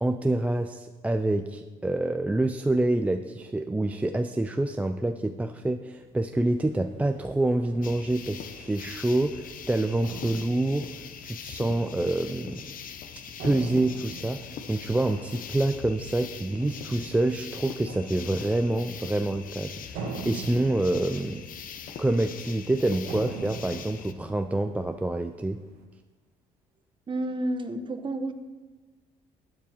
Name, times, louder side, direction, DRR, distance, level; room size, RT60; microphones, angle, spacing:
voice 1, 0.0-10.9 11.2-12.6 13.4-21.5 22.0-25.6, right 2 dB, 10° right, 7 dB, 0.4 m, -27 dB
sound 1, 6.0-25.8, right 4 dB, 85° right, 1.6 m, -44 dB
sound 2, 7.8-24.1, left 7 dB, 55° left, 0.9 m, -41 dB
voice 2, 27.1-28.3, right 1 dB, 30° right, 8 dB, 1.0 m, -30 dB
12.5 x 9.7 x 4.4 m, 1.3 s
cardioid pair, 110°, 17 cm